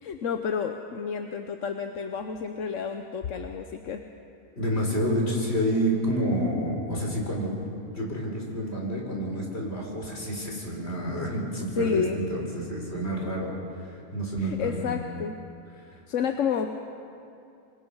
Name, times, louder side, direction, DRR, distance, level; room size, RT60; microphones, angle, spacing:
voice 1, 0.0-4.0 11.8-12.2 14.4-15.4 16.1-16.7, left 6 dB, 55° left, 6 dB, 1.1 m, -30 dB
voice 2, 4.6-7.5 7.9-13.5 13.8-14.9, equal, 40° left, -1 dB, 5.0 m, -29 dB
27.0 x 23.0 x 5.6 m, 2.6 s
omnidirectional pair, 1.7 m